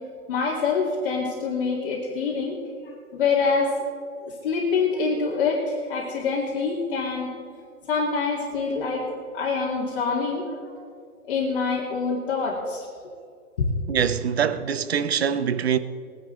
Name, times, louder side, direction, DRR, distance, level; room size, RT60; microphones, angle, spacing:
voice 1, 0.3-3.7 4.2-7.3 7.9-9.1 9.3-10.8 11.3-12.9 13.6-13.7, left 4 dB, 35° left, 2.4 m, -26 dB
voice 2, 13.9-15.8, right 8 dB, 45° right, 0.7 m, -24 dB
21.0 x 10.5 x 4.0 m
hypercardioid pair, 165°, 45 cm